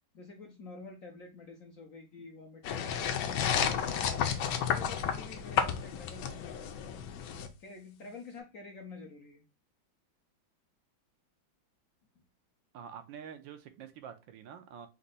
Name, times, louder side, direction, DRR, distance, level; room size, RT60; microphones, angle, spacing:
voice 1, 0.1-3.2 3.5-4.3 4.7-6.7 7.6-9.4, left 3 dB, 60° left, 2 dB, 0.9 m, -48 dB
sound 1, 2.6-7.5, left 8 dB, 85° left, 1.4 m, -32 dB
voice 2, 12.7-14.9, right 8 dB, 75° right, 8 dB, 1.3 m, -47 dB
4.2 x 2.6 x 3.8 m, 0.28 s
omnidirectional pair, 2.2 m